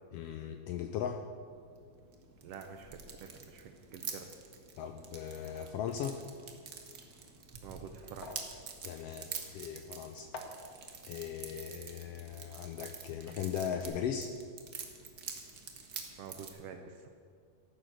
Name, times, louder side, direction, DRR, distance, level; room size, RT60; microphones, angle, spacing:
voice 1, 0.1-1.3 4.8-6.2 8.8-10.3 11.1-14.4, left 8 dB, 80° left, 7 dB, 1.4 m, -38 dB
sound 1, 1.5-16.5, right 6 dB, 55° right, 1.0 m, -47 dB
voice 2, 2.4-4.3 7.6-8.5 16.2-17.1, right 6 dB, 75° right, 6 dB, 1.5 m, -48 dB
sound 2, 8.0-13.3 13.6-13.8, left 3 dB, 60° left, 0.9 m, -52 dB
13.5 x 9.3 x 6.5 m, 2.1 s
omnidirectional pair, 3.3 m